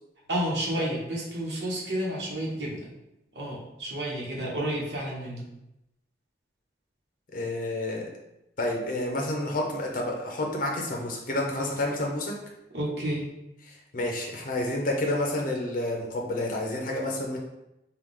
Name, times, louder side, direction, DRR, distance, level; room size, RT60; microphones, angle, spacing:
voice 1, 0.3-2.9 3.3-5.4 12.7-13.2, right 1 dB, 70° right, -4 dB, 1.3 m, -30 dB
voice 2, 7.3-8.1 8.6-12.3 13.7-17.4, left 1 dB, 50° left, -1 dB, 0.7 m, -29 dB
4.7 x 2.4 x 3.7 m, 0.88 s
head